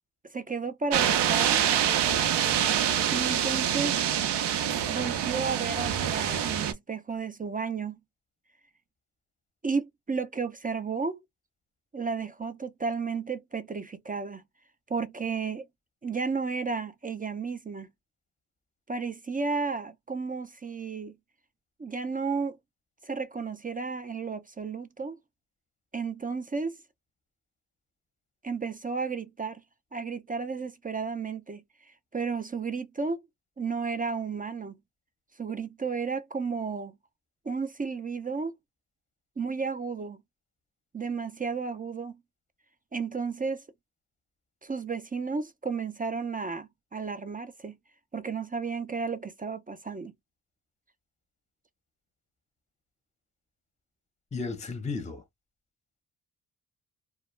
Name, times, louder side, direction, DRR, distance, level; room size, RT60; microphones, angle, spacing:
voice 1, 0.3-1.6 3.1-4.0 4.9-8.0 9.6-11.2 11.9-14.4 14.9-15.7 16.0-17.9 18.9-21.1 21.8-22.6 23.0-25.2 25.9-26.8 28.4-29.6 29.9-31.6 32.1-33.2 33.6-34.8 35.4-37.0 37.5-38.5 39.4-40.2 40.9-42.2 42.9-43.6 44.6-47.8 48.1-50.1, right 5 dB, 20° right, 0.4 m, -33 dB
sound 1, 0.9-6.7, right 9 dB, 80° right, 0.7 m, -26 dB
voice 2, 54.3-55.2, left 4 dB, 15° left, 0.7 m, -34 dB
2.2 x 2.1 x 3.1 m
cardioid pair, 70°, 41 cm